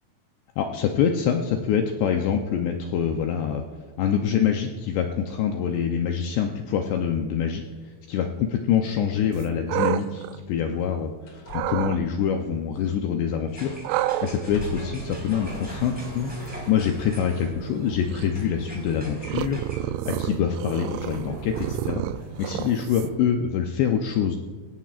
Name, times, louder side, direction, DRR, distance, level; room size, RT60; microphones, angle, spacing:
voice 1, 0.6-3.6 4.0-7.6 8.1-22.0 22.4-24.4, left 8 dB, 85° left, 3 dB, 2.4 m, -25 dB
sound 1, 9.3-11.1 11.5-12.0 13.8-23.3, right 14 dB, 85° right, 2.7 m, -32 dB
sound 2, 10.7-10.9 11.3-13.2 13.6-13.9 14.2-15.0 16.1-16.2, left 3 dB, 40° left, 2.3 m, -41 dB
sound 3, 13.5-23.1, equal, ahead, 3.7 m, -41 dB
23.0 x 17.5 x 2.5 m, 1.5 s
omnidirectional pair, 5.8 m